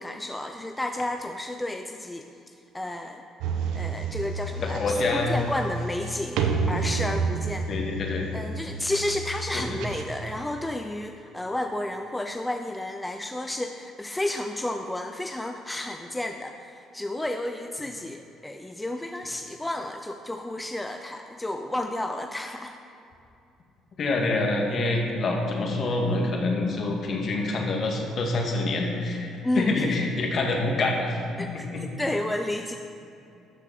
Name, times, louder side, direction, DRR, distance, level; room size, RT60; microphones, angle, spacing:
voice 1, 0.0-2.3 2.7-3.2 3.7-6.4 6.7-7.7 8.3-22.8 29.4-30.1 31.4-32.8, left 1 dB, 10° left, 5 dB, 0.4 m, -31 dB
sound 1, 3.4-10.4, right 4 dB, 85° right, 0.9 m, -30 dB
voice 2, 4.6-5.3 7.7-8.3 9.5-9.6 24.0-29.3 29.5-31.8, left 2 dB, 50° left, 1 dB, 1.8 m, -26 dB
13.0 x 6.3 x 4.4 m, 2.7 s
cardioid pair, 100°, 0 cm